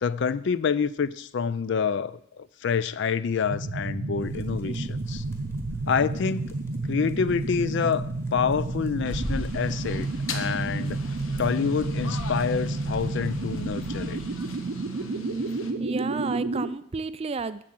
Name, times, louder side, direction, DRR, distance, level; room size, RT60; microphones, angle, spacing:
voice 1, 0.0-5.2 5.9-6.5 6.9-11.0 11.4-14.2, left 6 dB, 55° left, 17 dB, 0.4 m, -27 dB
sound 1, 3.4-16.7, right 2 dB, 70° right, 0.8 m, -31 dB
sound 2, 4.2-14.7, equal, 15° left, 1.3 m, -41 dB
sound 3, 9.0-15.7, left 5 dB, 75° left, 1.2 m, -42 dB
voice 2, 15.8-17.6, right 4 dB, 30° right, 15 dB, 0.4 m, -32 dB
7.7 x 7.4 x 7.6 m, 0.70 s
head